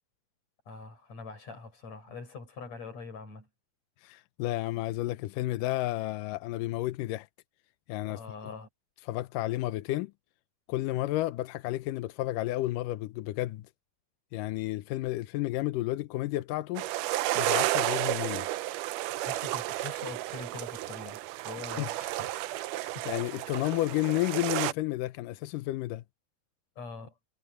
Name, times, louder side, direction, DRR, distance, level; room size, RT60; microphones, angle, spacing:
voice 1, 0.7-3.5 8.0-8.7 19.2-22.3 23.0-23.1 26.8-27.1, left 4 dB, 45° left, 7.2 m, -43 dB
voice 2, 4.0-7.3 7.9-8.2 9.1-10.1 10.7-13.7 14.3-16.9 17.4-18.5 21.8-21.9 22.7-26.0, left 17 dB, 80° left, 2.0 m, -31 dB
sound 1, 16.8-24.7, right 16 dB, 85° right, 1.9 m, -32 dB
omnidirectional pair, 4.4 m